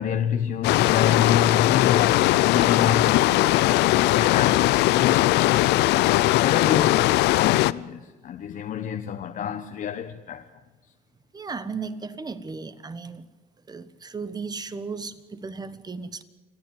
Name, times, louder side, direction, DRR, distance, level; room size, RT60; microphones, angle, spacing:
voice 1, 0.0-5.3 6.4-10.5, left 8 dB, 55° left, 1.0 m, -28 dB
sound 1, 0.6-7.7, left 17 dB, 85° left, 0.5 m, -19 dB
voice 2, 11.3-13.3 13.7-16.2, right 4 dB, 25° right, 1.3 m, -35 dB
28.5 x 10.0 x 9.2 m
cardioid pair, 110°, 17 cm